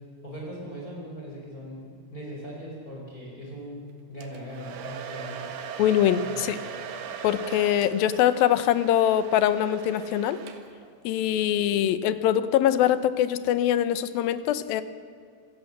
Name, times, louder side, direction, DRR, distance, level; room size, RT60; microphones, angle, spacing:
voice 1, 0.2-3.8 4.1-5.5 6.2-6.3, equal, 20° left, -3 dB, 5.4 m, -39 dB
Domestic sounds home sounds, 4.2-10.9, right 6 dB, 70° right, 3.5 m, -39 dB
voice 2, 5.8-6.6 7.2-10.4 11.0-14.8, left 11 dB, 75° left, 13 dB, 2.4 m, -23 dB
27.0 x 17.5 x 7.4 m, 2.3 s
omnidirectional pair, 4.9 m